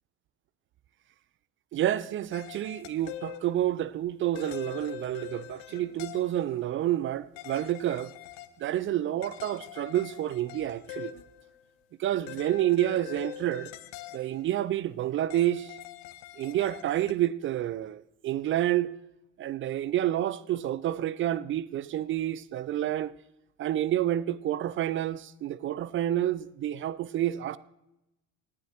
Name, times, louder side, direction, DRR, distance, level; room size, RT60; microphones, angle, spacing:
voice 1, 1.7-8.1 8.6-11.1 12.0-13.7 14.1-15.8 16.4-18.9 19.4-23.1 23.6-27.6, right 13 dB, 30° right, 0.4 m, -29 dB
sound 1, 2.3-3.8 4.4-6.6 7.4-8.6 8.9-9.0 9.2-11.6 12.3-14.6 15.3-17.1, left 13 dB, 55° left, 0.9 m, -44 dB
18.0 x 9.8 x 2.9 m
hypercardioid pair, 75°, 41 cm